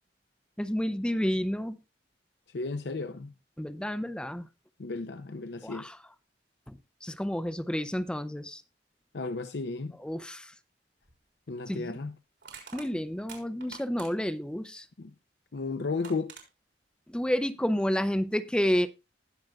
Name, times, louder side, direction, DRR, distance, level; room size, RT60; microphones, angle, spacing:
voice 1, 0.6-1.8 3.6-4.5 5.6-6.0 6.7-8.6 10.0-10.5 11.7-11.9 12.7-14.9 17.1-18.9, equal, 5° left, 0.4 m, -30 dB
voice 2, 2.5-3.3 4.8-5.9 9.1-9.9 11.5-12.1 15.0-15.1 15.5-16.3, left 3 dB, 70° left, 0.6 m, -34 dB
Crushing, 11.0-11.2 12.4-14.4 15.6-15.7 16.0-16.5, right 6 dB, 80° right, 4.0 m, -47 dB
19.5 x 6.5 x 2.3 m
head